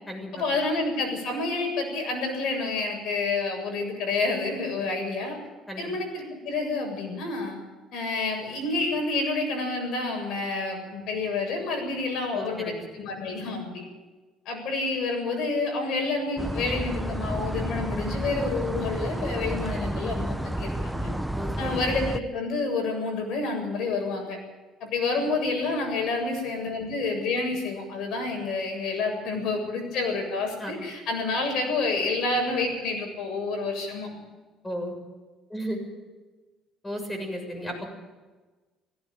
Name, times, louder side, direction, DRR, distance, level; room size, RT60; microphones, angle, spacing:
voice 1, 0.3-5.4 5.8-7.6 7.9-13.9 14.5-21.1 21.6-24.4 24.8-34.1, left 3 dB, 65° left, 3 dB, 7.6 m, -29 dB
voice 2, 12.3-12.7 21.3-21.8 30.6-30.7 34.6-35.0 35.5-35.8 36.8-37.9, equal, 10° left, 4 dB, 7.0 m, -34 dB
sound 1, 16.4-22.2, right 1 dB, 5° right, 0.8 m, -31 dB
17.0 x 16.5 x 9.1 m, 1.2 s
cardioid pair, 110°, 0 cm